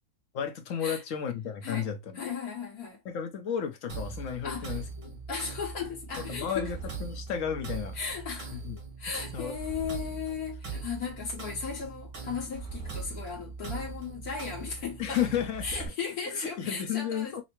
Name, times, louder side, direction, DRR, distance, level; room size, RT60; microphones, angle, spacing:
voice 1, 0.3-2.2 3.0-5.2 6.3-8.0 8.5-8.8 9.3-9.5 15.0-15.9 16.3-17.4, left 8 dB, 65° left, 1.0 m, -33 dB
voice 2, 2.1-3.0 4.4-4.8 5.3-6.7 7.9-8.6 9.0-15.2 15.6-17.4, left 6 dB, 85° left, 1.9 m, -36 dB
sound 1, 3.9-15.9, right 4 dB, 90° right, 2.4 m, -40 dB
5.6 x 2.0 x 3.0 m
omnidirectional pair, 1.6 m